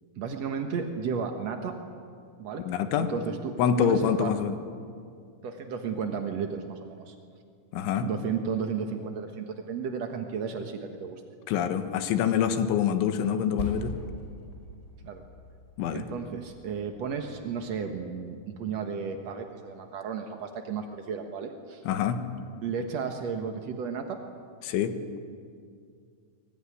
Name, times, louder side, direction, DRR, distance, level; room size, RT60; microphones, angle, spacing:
voice 1, 0.1-1.7 2.4-2.6 3.1-4.3 5.4-7.1 8.0-11.2 15.0-15.2 15.9-21.8 22.6-24.2, right 6 dB, 75° right, 4 dB, 1.5 m, -33 dB
voice 2, 2.7-3.1 3.6-4.6 7.7-8.1 11.5-13.9 15.8-16.1 21.9-22.2 24.6-25.0, left 8 dB, 90° left, 8 dB, 3.7 m, -26 dB
Percussion, 13.6-18.4, left 1 dB, 20° left, 5.5 m, -42 dB
24.0 x 20.5 x 9.9 m, 2.2 s
omnidirectional pair, 5.3 m